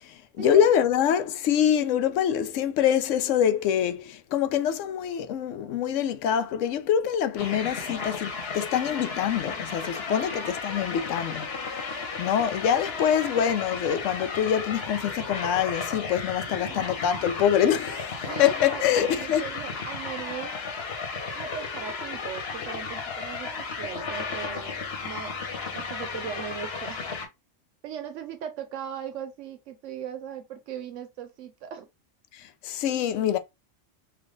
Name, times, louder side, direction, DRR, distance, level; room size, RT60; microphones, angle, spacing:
voice 1, 0.4-11.5 12.2-19.4 32.6-33.4, left 9 dB, 85° left, 0.9 m, -25 dB
sound 1, 7.4-27.3, left 4 dB, 60° left, 1.1 m, -34 dB
voice 2, 16.5-16.9 18.2-20.6 21.3-27.0 27.8-31.9, right 8 dB, 85° right, 0.9 m, -38 dB
3.3 x 2.5 x 3.7 m
omnidirectional pair, 1.2 m